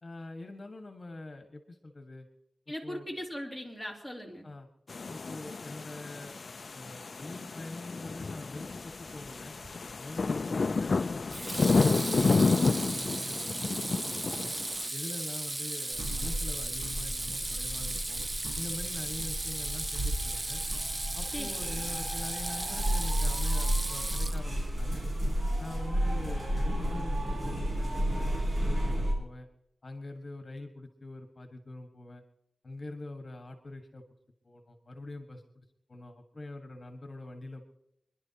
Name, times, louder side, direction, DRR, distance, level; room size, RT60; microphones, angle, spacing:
voice 1, 0.0-2.3 2.7-3.1 4.4-4.7 5.1-6.4 6.7-9.6 10.0-14.5 14.9-18.2 18.5-20.6 21.1-25.0 25.6-29.5 29.8-32.2 32.6-34.0 34.4-37.7, left 2 dB, 45° left, 4 dB, 1.6 m, -44 dB
voice 2, 2.7-4.5 21.3-21.8, equal, 5° right, -1 dB, 3.2 m, -39 dB
sound 1, 4.9-14.9, left 4 dB, 65° left, 0.4 m, -30 dB
Water tap faucet / Sink (filling or washing), 9.6-10.0 11.3-24.7, right 2 dB, 30° right, 0.5 m, -36 dB
sound 2, 15.9-29.1, equal, 50° right, 4.3 m, -32 dB
27.5 x 11.0 x 2.9 m, 0.80 s
wide cardioid pair, 70°, 0 cm